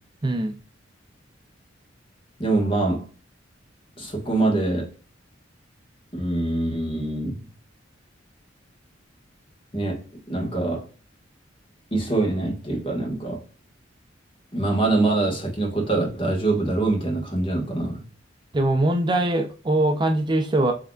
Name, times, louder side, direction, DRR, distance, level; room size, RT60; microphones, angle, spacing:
voice 1, 0.2-0.5 18.5-20.7, right 1 dB, 25° right, 5 dB, 0.5 m, -22 dB
voice 2, 2.4-3.0 4.0-4.9 6.1-7.4 9.7-10.0 10.3-10.8 11.9-13.4 14.5-18.0, right 2 dB, 30° left, -1 dB, 1.6 m, -24 dB
6.3 x 3.4 x 2.4 m, 0.37 s
head